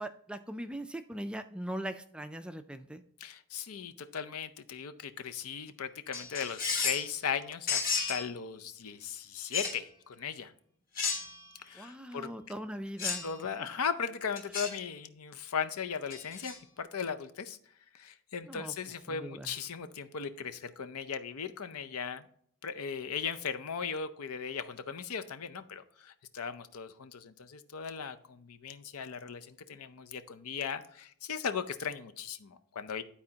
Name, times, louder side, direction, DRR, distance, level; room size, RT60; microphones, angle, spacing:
voice 1, 0.0-3.0 11.7-13.2 18.5-18.7 19.1-19.5, right 1 dB, 5° right, 8 dB, 0.3 m, -40 dB
voice 2, 3.2-10.5 11.6-12.3 13.2-17.6 17.9-22.2 22.6-33.0, left 6 dB, 80° left, 10 dB, 0.6 m, -37 dB
sound 1, 6.1-7.1 7.7-8.3 9.5-9.8 11.0-11.5 13.0-13.3 14.4-14.8 16.1-16.6, left 5 dB, 40° left, 1.3 m, -33 dB
12.0 x 4.2 x 2.8 m, 0.64 s
head